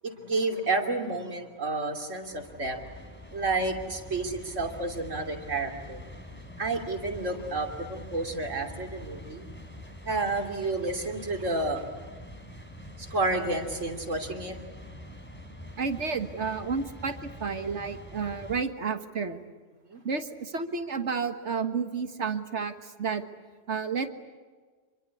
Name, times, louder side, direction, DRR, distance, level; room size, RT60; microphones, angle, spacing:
voice 1, 0.0-2.8 3.3-6.0 6.6-9.5 10.0-11.8 13.0-14.6 19.9-20.0, right 2 dB, 90° right, 4 dB, 3.3 m, -30 dB
sound 1, 2.1-18.6, left 1 dB, 10° left, 3.9 m, -45 dB
voice 2, 15.8-19.4 20.1-23.2 23.7-24.1, right 5 dB, 65° right, 8 dB, 1.8 m, -31 dB
27.0 x 23.5 x 8.4 m, 1.5 s
omnidirectional pair, 1.3 m